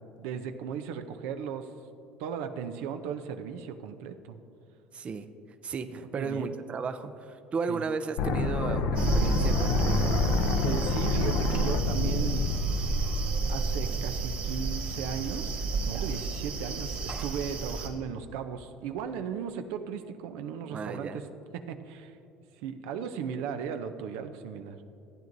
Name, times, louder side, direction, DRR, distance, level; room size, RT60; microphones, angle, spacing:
voice 1, 0.2-1.7 2.2-4.4 5.9-6.5 7.7-7.8 10.6-12.5 13.5-15.5 15.8-21.2 21.5-22.2 22.6-24.8, right 7 dB, 85° right, 8 dB, 0.6 m, -36 dB
voice 2, 4.9-5.3 5.6-10.2 20.7-21.2, right 5 dB, 35° right, 9 dB, 0.5 m, -34 dB
sound 1, 8.2-14.2, left 4 dB, 80° left, 0.6 m, -29 dB
sound 2, 8.9-17.9, right 3 dB, 50° right, 2.0 m, -30 dB
15.0 x 9.2 x 2.6 m, 2.8 s
supercardioid pair, 110°, 4 cm